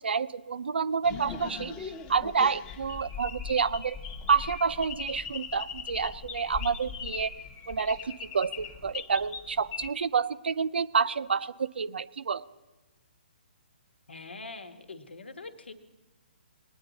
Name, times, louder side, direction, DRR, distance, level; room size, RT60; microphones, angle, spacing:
voice 1, 0.0-4.0 4.3-7.3 7.7-12.4, right 5 dB, 80° right, 13 dB, 0.5 m, -29 dB
sound 1, 1.0-9.9, left 6 dB, 20° left, 0.8 m, -40 dB
voice 2, 14.1-15.7, left 3 dB, 90° left, 9 dB, 1.3 m, -43 dB
21.0 x 9.8 x 4.0 m, 1.2 s
hypercardioid pair, 155°, 6 cm